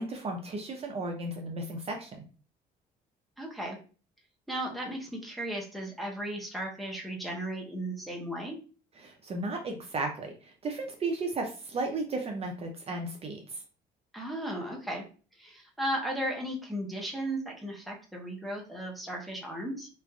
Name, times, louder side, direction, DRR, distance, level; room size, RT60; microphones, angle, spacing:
voice 1, 0.0-2.1 9.0-13.6, right 2 dB, 35° right, 2 dB, 0.5 m, -34 dB
voice 2, 3.4-3.8 4.5-8.6 14.1-15.0 15.4-19.9, right 1 dB, ahead, -2 dB, 0.7 m, -35 dB
3.1 x 2.4 x 2.2 m, 0.38 s
cardioid pair, 110°, 17 cm